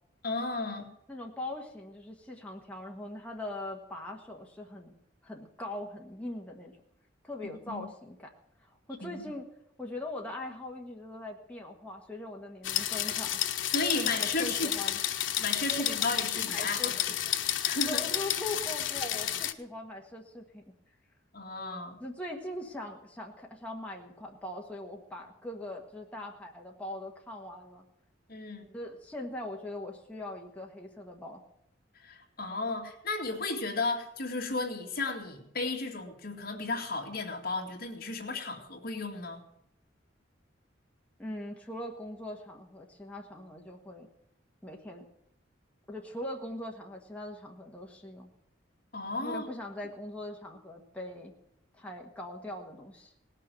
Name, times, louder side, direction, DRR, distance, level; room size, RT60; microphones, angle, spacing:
voice 1, 0.2-0.9 7.7-7.8 9.0-9.2 13.7-14.7 15.4-17.2 17.6-18.0 21.3-22.0 28.3-28.7 32.0-39.4 48.9-49.5, left 3 dB, 55° left, 2 dB, 2.3 m, -34 dB
voice 2, 1.1-4.9 5.2-6.7 7.2-8.3 8.7-9.4 9.8-15.0 15.7-16.0 16.3-17.2 17.9-20.6 22.0-27.8 28.7-31.4 41.2-44.1 44.6-45.1 45.9-48.3 49.2-51.3 51.7-53.1, left 1 dB, 5° left, -1 dB, 1.6 m, -41 dB
sound 1, 12.6-19.5, left 11 dB, 85° left, 0.9 m, -31 dB
18.5 x 6.6 x 9.1 m, 0.77 s
head